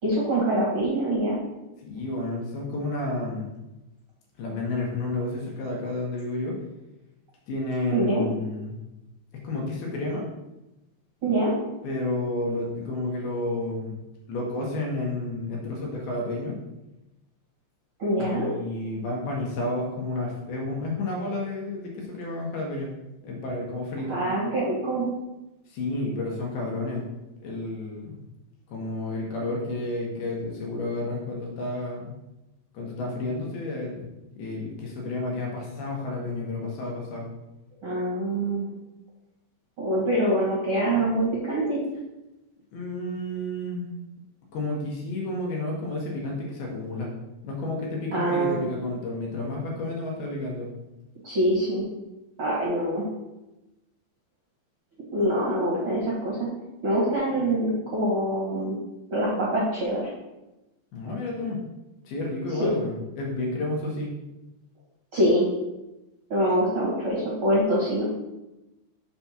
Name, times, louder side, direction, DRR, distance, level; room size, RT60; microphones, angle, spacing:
voice 1, 0.0-1.4 7.9-8.2 11.2-11.5 18.0-18.5 24.1-25.1 37.8-38.7 39.8-41.8 48.1-48.7 51.2-51.8 52.4-53.1 55.1-56.5 56.8-58.8 59.1-60.1 62.6-62.7 65.1-65.5 66.3-68.0, right 1 dB, 50° right, -6 dB, 1.6 m, -24 dB
voice 2, 1.8-3.5 4.4-6.6 7.5-8.8 9.3-10.2 11.8-14.0 14.3-16.5 18.2-22.9 23.2-24.2 25.7-27.0 27.4-28.2 28.7-32.1 32.7-34.1 34.4-37.3 42.7-43.9 44.5-47.1 47.4-50.7 60.9-61.6 62.0-64.1, left 2 dB, 70° left, -2 dB, 2.9 m, -31 dB
6.9 x 4.4 x 5.9 m, 0.98 s
omnidirectional pair, 5.1 m